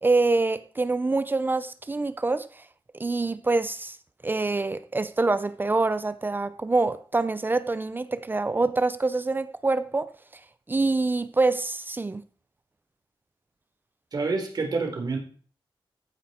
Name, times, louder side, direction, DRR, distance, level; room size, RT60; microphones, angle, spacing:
voice 1, 0.0-2.6 3.0-4.0 4.2-10.1 10.7-12.2, right 3 dB, 25° right, 0.6 m, -25 dB
voice 2, 14.1-15.2, right 3 dB, 50° right, 3.6 m, -27 dB
15.5 x 9.4 x 4.4 m
wide cardioid pair, 150°, 9 cm